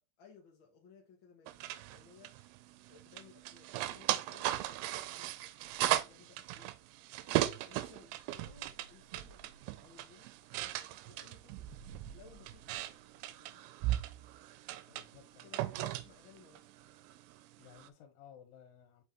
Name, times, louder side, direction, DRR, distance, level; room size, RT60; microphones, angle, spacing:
voice 1, 0.2-5.4 6.1-6.7 7.6-9.5 9.8-11.7 12.1-13.0 13.3-13.7 14.9-15.1 15.4-16.7, left 6 dB, 70° left, 1.1 m, -61 dB
sound 1, 1.5-17.9, right 15 dB, 80° right, 2.4 m, -38 dB
voice 2, 14.9-16.0 17.6-19.0, left 8 dB, 90° left, 3.2 m, -57 dB
6.0 x 5.5 x 2.9 m
omnidirectional pair, 4.6 m